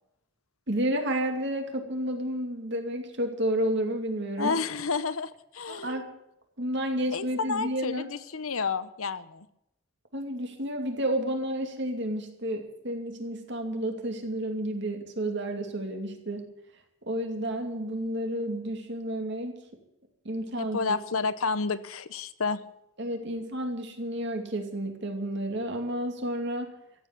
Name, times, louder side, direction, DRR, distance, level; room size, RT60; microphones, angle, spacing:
voice 1, 0.7-4.5 5.7-6.1 6.6-8.1 10.1-16.5 17.1-19.5 20.2-20.8 23.0-26.7, right 1 dB, 55° right, 4 dB, 2.6 m, -31 dB
voice 2, 4.4-5.9 7.1-9.5 20.6-22.6, left 4 dB, 80° left, 14 dB, 0.9 m, -30 dB
14.5 x 8.5 x 9.6 m, 0.82 s
head